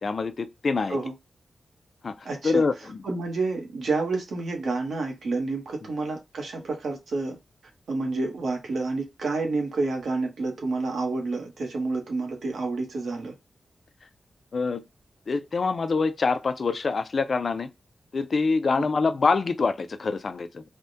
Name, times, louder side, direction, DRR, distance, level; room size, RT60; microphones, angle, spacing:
voice 1, 0.0-1.0 2.0-3.0 14.5-14.8 15.3-17.7 18.1-20.6, left 4 dB, 50° left, 0.3 m, -25 dB
voice 2, 2.2-2.6 3.0-7.4 7.9-13.3, right 3 dB, 90° right, 1.0 m, -29 dB
3.4 x 2.1 x 2.7 m
wide cardioid pair, 125°, 0 cm